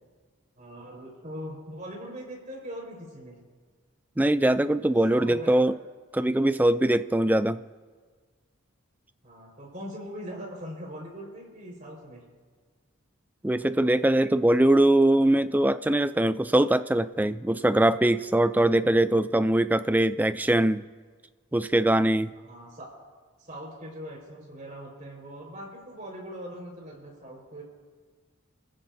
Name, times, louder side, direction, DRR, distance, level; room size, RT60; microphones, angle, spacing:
voice 1, 0.6-3.4 5.1-5.7 7.4-7.5 9.2-12.2 22.4-22.9 23.4-27.6, equal, 40° right, -2 dB, 4.9 m, -41 dB
voice 2, 4.2-5.8 6.1-7.6 13.4-20.9 21.5-22.3, right 1 dB, 10° right, 12 dB, 0.3 m, -22 dB
29.0 x 15.5 x 2.7 m, 1.5 s
head